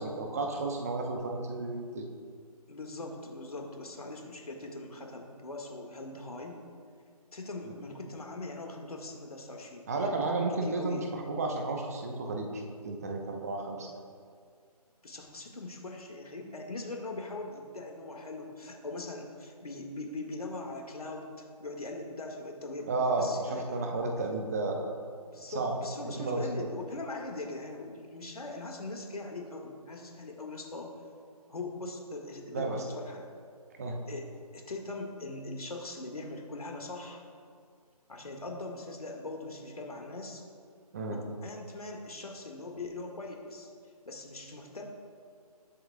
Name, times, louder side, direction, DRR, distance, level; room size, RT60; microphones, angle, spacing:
voice 1, 0.0-2.0 7.6-7.7 9.9-14.0 22.9-24.9 25.5-25.8 26.0-26.7 32.5-32.8 33.8-34.0 40.9-41.2, right 3 dB, 25° right, 2 dB, 1.0 m, -32 dB
voice 2, 2.7-6.6 7.3-10.1 10.6-11.1 15.0-23.9 25.3-30.9 31.5-33.3 34.1-34.3 34.5-37.2 38.1-40.4 41.1-43.7 44.1-44.9, left 2 dB, 70° left, 2 dB, 2.0 m, -41 dB
20.0 x 7.7 x 2.4 m, 2.1 s
figure-of-eight pair, 160°, 20 cm